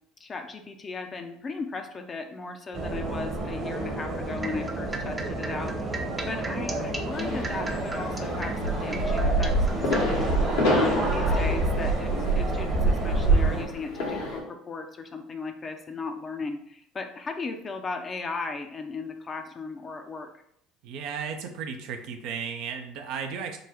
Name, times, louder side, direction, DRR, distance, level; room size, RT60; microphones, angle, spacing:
voice 1, 0.2-10.3 10.7-20.3, left 4 dB, 35° left, 6 dB, 0.6 m, -36 dB
sound 1, 2.7-13.7, right 2 dB, 45° right, 1.1 m, -27 dB
sound 2, 4.3-10.0, right 2 dB, 20° right, 0.6 m, -37 dB
sound 3, 7.1-14.4, left 2 dB, 80° left, 1.4 m, -31 dB
voice 2, 20.8-23.6, right 6 dB, 70° right, 5 dB, 0.6 m, -34 dB
3.9 x 2.2 x 4.5 m, 0.71 s
hypercardioid pair, 70°, 0 cm